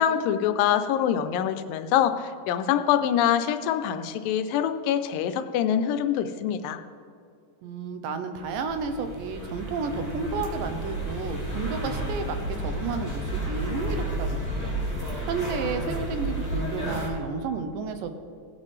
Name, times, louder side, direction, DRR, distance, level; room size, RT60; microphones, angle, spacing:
voice 1, 0.0-6.8, left 9 dB, 85° left, 10 dB, 2.3 m, -25 dB
voice 2, 7.6-14.7 15.0-18.2, right 4 dB, 80° right, 8 dB, 2.3 m, -32 dB
sound 1, 8.4-17.1, right 1 dB, 10° right, 1.2 m, -31 dB
17.5 x 8.5 x 3.2 m, 2.4 s
omnidirectional pair, 4.0 m